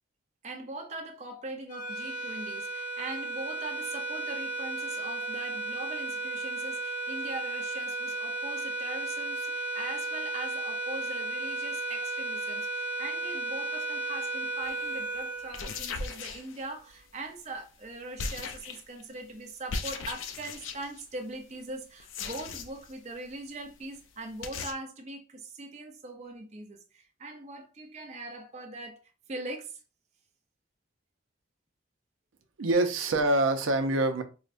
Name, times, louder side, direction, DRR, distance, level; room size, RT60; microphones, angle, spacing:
voice 1, 0.4-29.0 29.3-29.8, right 2 dB, 35° right, 0.6 m, -41 dB
sound 1, 1.7-16.2, right 2 dB, 40° left, 0.7 m, -34 dB
sound 2, 14.6-14.8 15.4-17.0 18.2-19.0 19.7-21.0 22.0-22.9 23.2-23.3 23.6-23.7 24.0-24.1 24.4-24.7, left 4 dB, 80° left, 0.5 m, -37 dB
voice 2, 32.6-34.2, right 2 dB, 80° right, 0.5 m, -25 dB
4.7 x 2.1 x 2.5 m
head